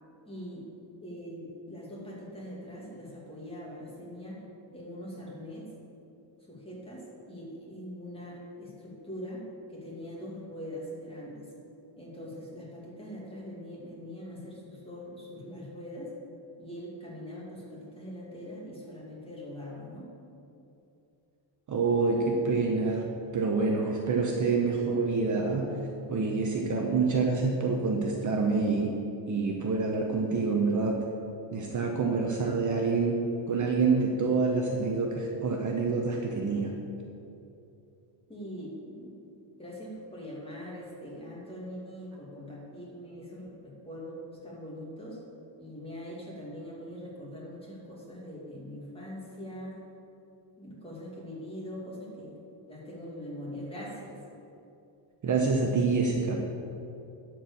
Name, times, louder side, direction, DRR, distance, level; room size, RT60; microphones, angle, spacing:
voice 1, 0.2-0.7 1.0-4.4 4.7-5.7 6.5-9.4 9.7-11.5 12.0-16.1 16.6-20.1 38.3-39.1 39.6-45.2 45.6-49.7 50.6-52.4 52.7-54.2, equal, 10° left, -4 dB, 2.4 m, -42 dB
voice 2, 21.7-23.0 23.3-25.8 26.1-28.9 29.3-31.0 31.5-33.2 33.5-36.7 55.2-56.4, right 4 dB, 40° right, 1 dB, 0.9 m, -27 dB
11.5 x 4.7 x 6.9 m, 2.8 s
cardioid pair, 140°, 47 cm